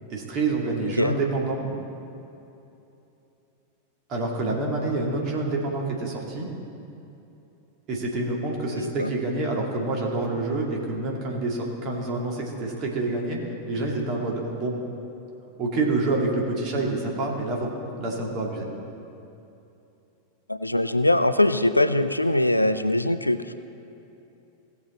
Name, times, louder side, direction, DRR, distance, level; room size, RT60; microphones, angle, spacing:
voice 1, 0.1-1.7 4.1-6.5 7.9-14.8 15.6-17.7 18.0-18.7, right 2 dB, 35° right, -1 dB, 2.1 m, -27 dB
voice 2, 0.8-1.2 8.7-9.1 20.5-23.4, left 1 dB, 85° left, 12 dB, 0.4 m, -22 dB
17.5 x 7.0 x 4.1 m, 2.8 s
figure-of-eight pair, 90°, 0 cm